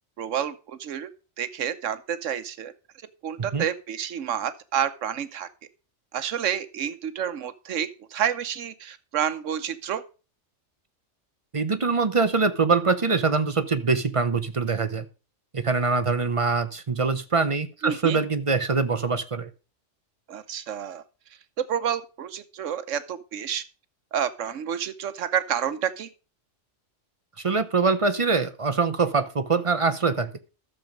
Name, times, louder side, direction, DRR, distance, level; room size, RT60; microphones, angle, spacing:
voice 1, 0.2-1.1 1.4-2.7 3.2-5.5 6.1-10.0 17.8-18.2 20.3-21.0 21.6-23.6 24.1-26.1, right 9 dB, 85° right, 12 dB, 1.2 m, -29 dB
voice 2, 11.5-15.0 15.5-19.5 27.4-30.3, right 4 dB, 35° right, 10 dB, 0.6 m, -24 dB
12.0 x 7.1 x 5.1 m, 0.34 s
omnidirectional pair, 1.3 m